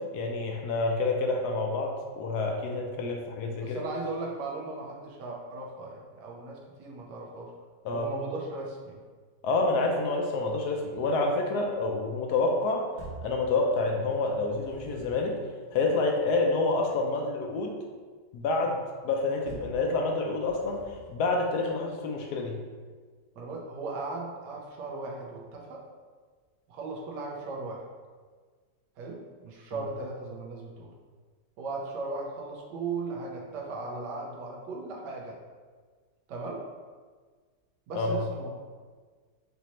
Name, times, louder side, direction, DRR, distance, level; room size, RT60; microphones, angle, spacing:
voice 1, 0.0-3.8 7.8-8.1 9.4-12.9 13.2-15.3 15.7-17.7 18.3-22.6 29.7-29.9 37.9-38.2, left 3 dB, 75° left, 1 dB, 1.1 m, -28 dB
voice 2, 3.6-7.5 7.9-9.0 23.4-25.8 26.7-27.8 29.0-30.9 31.6-35.4 36.3-36.6 37.9-38.5, right 3 dB, 80° right, -1 dB, 1.3 m, -37 dB
sound 1, 13.0-13.4 14.3-15.3 19.5-19.8 20.4-21.2, right 2 dB, 30° right, 1.4 m, -45 dB
5.0 x 2.7 x 3.0 m, 1.5 s
omnidirectional pair, 1.8 m